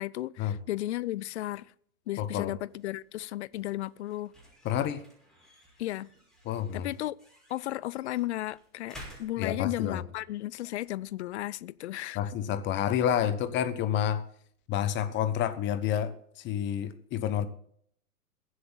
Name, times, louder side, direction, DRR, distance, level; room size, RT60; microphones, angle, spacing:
voice 1, 0.0-1.7 2.1-4.3 5.8-6.1 6.7-7.1 7.5-12.2, left 15 dB, 50° left, 0.6 m, -34 dB
sound 1, 2.1-14.8, equal, ahead, 5.5 m, -56 dB
voice 2, 2.2-2.5 4.6-5.0 6.4-6.9 9.4-10.0 12.1-14.2 14.7-17.5, left 10 dB, 25° left, 1.1 m, -29 dB
21.5 x 7.9 x 4.0 m
hypercardioid pair, 120°, 45 cm